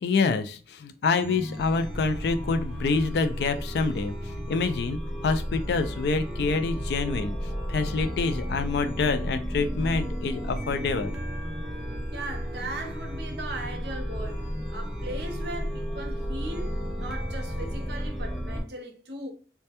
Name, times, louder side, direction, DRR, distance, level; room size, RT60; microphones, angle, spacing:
voice 1, 0.0-4.2 4.5-7.3 7.7-11.1, left 4 dB, 65° left, 0.3 m, -27 dB
Chime, 1.2-18.6, equal, 5° right, 0.4 m, -33 dB
voice 2, 12.1-19.3, right 2 dB, 65° right, 0.6 m, -38 dB
2.2 x 2.1 x 2.8 m
head